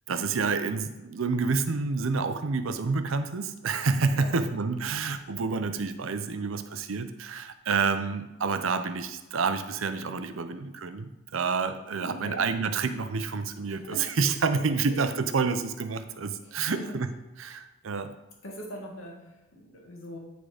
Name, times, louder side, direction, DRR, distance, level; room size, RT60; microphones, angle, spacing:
voice 1, 0.1-17.1 17.4-18.1, right 4 dB, 75° right, 10 dB, 0.6 m, -28 dB
voice 2, 4.1-4.4 12.0-12.5 13.7-14.2 16.3-17.1 18.4-20.2, equal, 80° left, -1 dB, 1.7 m, -42 dB
9.6 x 3.8 x 4.9 m, 1.0 s
head